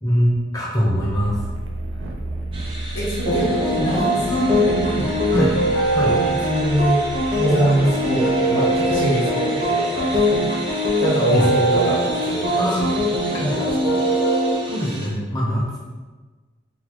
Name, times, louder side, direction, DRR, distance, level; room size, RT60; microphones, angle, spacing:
voice 1, 0.0-1.5 5.3-5.5 5.9-6.2 11.3-11.5 12.6-12.9 14.7-15.8, equal, 20° left, -4 dB, 0.6 m, -22 dB
sound 1, 0.9-9.1, right 1 dB, 85° right, 0.4 m, -31 dB
sound 2, 2.5-15.1, right 2 dB, 30° right, 0.4 m, -35 dB
voice 2, 2.9-5.4 5.9-7.0 7.4-10.5 11.0-14.0, equal, 75° left, -7 dB, 0.9 m, -24 dB
sound 3, 3.3-14.6, equal, 45° right, 0.8 m, -21 dB
3.9 x 2.2 x 3.0 m, 1.3 s
head